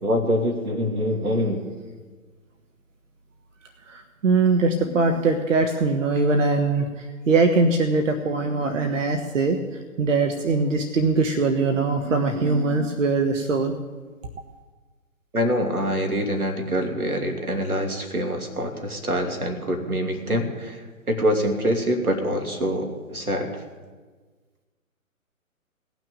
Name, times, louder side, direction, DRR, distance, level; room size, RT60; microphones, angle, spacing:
voice 1, 0.0-1.6 15.3-20.8 21.1-23.5, equal, 90° right, 4 dB, 2.8 m, -25 dB
voice 2, 3.9-6.9 7.3-9.6 10.0-13.7, right 3 dB, 60° right, 6 dB, 1.4 m, -21 dB
18.0 x 6.2 x 8.9 m, 1.4 s
figure-of-eight pair, 130°, 42 cm